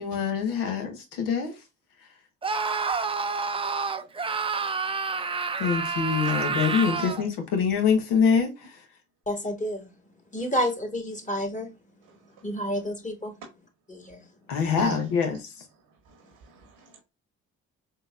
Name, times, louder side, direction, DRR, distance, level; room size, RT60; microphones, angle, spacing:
voice 1, 0.0-1.5 5.6-8.8 14.5-15.6, left 6 dB, 85° left, 1.1 m, -25 dB
Screaming, 2.4-7.3, right 5 dB, 15° right, 0.4 m, -28 dB
voice 2, 9.3-9.9 10.3-11.7 12.4-13.3 13.9-14.2, equal, 20° left, 1.4 m, -29 dB
voice 3, 16.0-17.0, right 3 dB, 80° right, 1.0 m, -40 dB
3.8 x 2.8 x 2.5 m
supercardioid pair, 55°, 33 cm